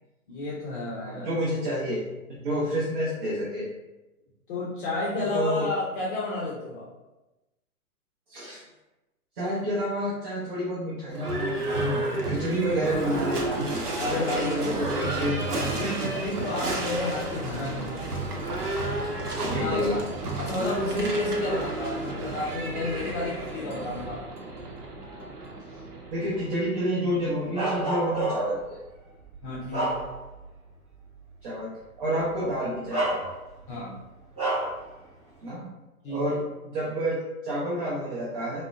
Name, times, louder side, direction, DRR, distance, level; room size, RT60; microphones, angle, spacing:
voice 1, 0.3-1.3 4.5-6.8 14.0-15.1 15.7-18.0 18.9-20.1 20.4-24.2 29.4-30.0 33.7-34.0 36.0-36.4, left 2 dB, 35° left, -5 dB, 0.5 m, -32 dB
voice 2, 1.0-3.7 5.1-5.7 8.3-8.6 9.3-13.8 14.1-15.7 19.4-20.0 23.0-23.1 26.1-28.8 31.4-31.7 32.0-33.2 35.4-35.7 36.1-38.6, equal, 35° right, -6 dB, 0.6 m, -29 dB
Livestock farm animals working animals / Bell, 11.1-27.0, right 2 dB, 85° right, 0.7 m, -31 dB
Bark, 27.5-28.6 29.2-30.5 30.9-31.1 32.2-32.3 32.9-33.7 34.4-34.8, right 2 dB, 15° right, 1.2 m, -29 dB
3.4 x 2.1 x 2.3 m, 1.0 s
hypercardioid pair, 125°, 45 cm